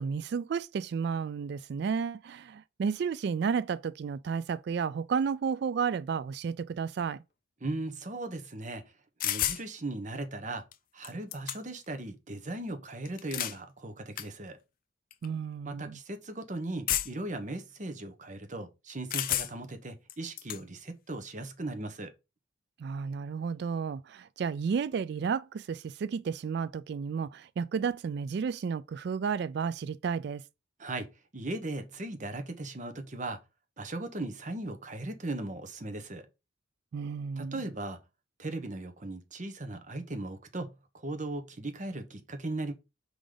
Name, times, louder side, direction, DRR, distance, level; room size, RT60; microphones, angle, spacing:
voice 1, 0.0-7.2 15.2-16.0 22.8-30.4 36.9-37.6, right 6 dB, 60° right, 0.3 m, -32 dB
voice 2, 7.6-8.8 9.2-10.6 10.9-14.6 15.6-22.1 30.8-33.4 33.8-36.2 37.4-38.0 38.4-42.7, right 2 dB, 40° right, 1.0 m, -38 dB
sound 1, 9.2-9.6 10.7-10.8 11.0-11.9 13.1-13.6 14.2-14.3 15.1-15.3 16.9-17.3 19.1-19.7 20.1-20.6, left 12 dB, 45° left, 0.5 m, -31 dB
4.9 x 3.9 x 5.0 m
head